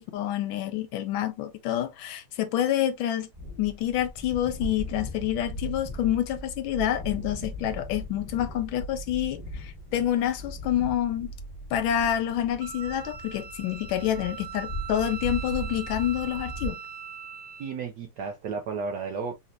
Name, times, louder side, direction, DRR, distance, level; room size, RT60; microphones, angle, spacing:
voice 1, 0.0-3.3 3.6-11.3 11.7-16.8, left 11 dB, 75° left, 1.3 m, -28 dB
sound 1, 3.3-10.9, left 2 dB, 15° right, 1.1 m, -41 dB
sound 2, 4.5-16.7, right 2 dB, 45° left, 0.8 m, -39 dB
Wind instrument woodwind instrument, 12.6-17.7, right 7 dB, 50° right, 1.3 m, -41 dB
voice 2, 17.6-19.3, right 5 dB, 75° right, 1.0 m, -33 dB
4.1 x 2.8 x 2.4 m
omnidirectional pair, 2.3 m